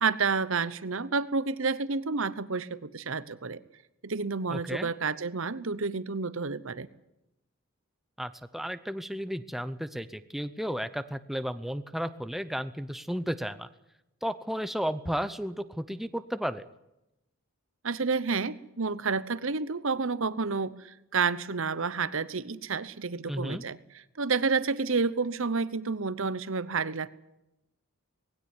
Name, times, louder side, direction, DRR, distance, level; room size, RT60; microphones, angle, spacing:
voice 1, 0.0-3.6 4.0-6.9 17.8-23.8 24.2-27.1, right 4 dB, 60° right, 17 dB, 0.9 m, -30 dB
voice 2, 4.5-4.9 8.2-13.7 14.2-16.7 23.3-23.6, equal, ahead, 12 dB, 0.7 m, -33 dB
19.5 x 17.0 x 9.7 m, 0.89 s
head